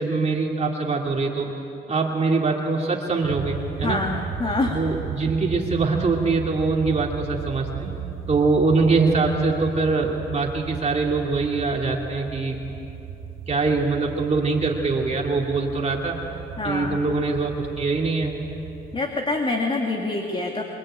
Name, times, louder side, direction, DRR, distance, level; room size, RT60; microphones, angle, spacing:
voice 1, 0.0-1.5 1.9-4.0 4.7-8.0 8.3-12.6 13.5-16.2 16.6-18.3, right 3 dB, 35° right, 0 dB, 2.5 m, -23 dB
sound 1, 3.2-19.0, right 7 dB, 80° right, 1.4 m, -36 dB
voice 2, 3.8-4.8 16.6-17.0 18.9-20.6, left 2 dB, 25° left, 2 dB, 2.5 m, -26 dB
26.5 x 23.5 x 8.9 m, 3.0 s
cardioid pair, 90°, 20 cm